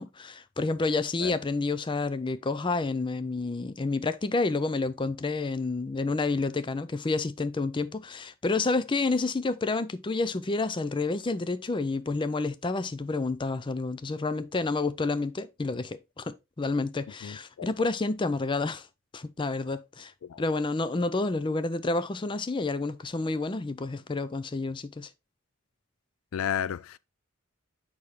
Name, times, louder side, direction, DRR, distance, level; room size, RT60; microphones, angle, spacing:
voice 1, 0.0-18.9 19.1-20.1 20.4-25.1, left 3 dB, 25° left, 0.4 m, -29 dB
voice 2, 17.2-17.7 20.2-20.4 26.3-27.0, left 9 dB, 85° left, 0.4 m, -32 dB
6.8 x 5.5 x 3.2 m
head